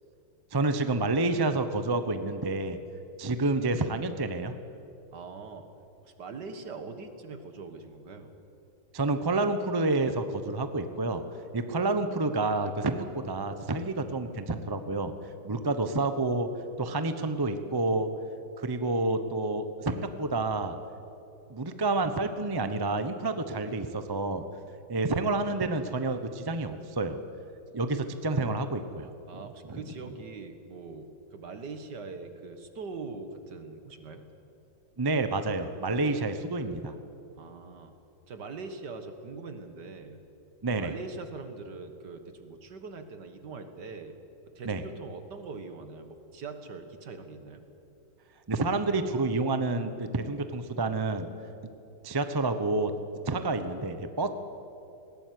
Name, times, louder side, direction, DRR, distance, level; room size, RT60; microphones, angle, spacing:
voice 1, 0.5-2.8 3.2-4.5 8.9-11.2 11.5-15.1 15.4-16.5 16.8-18.1 18.6-20.7 21.5-24.4 24.9-27.2 27.7-29.1 29.6-29.8 35.0-36.9 40.6-40.9 44.6-44.8 48.5-51.3 52.0-52.9 53.3-54.3, right 2 dB, 20° right, 9 dB, 0.7 m, -29 dB
voice 2, 5.1-5.7 6.0-8.3 29.3-34.3 37.3-37.9 38.3-40.2 40.7-44.2 44.6-47.7, right 4 dB, 65° right, 8 dB, 2.1 m, -42 dB
20.0 x 17.5 x 9.5 m, 2.8 s
omnidirectional pair, 2.0 m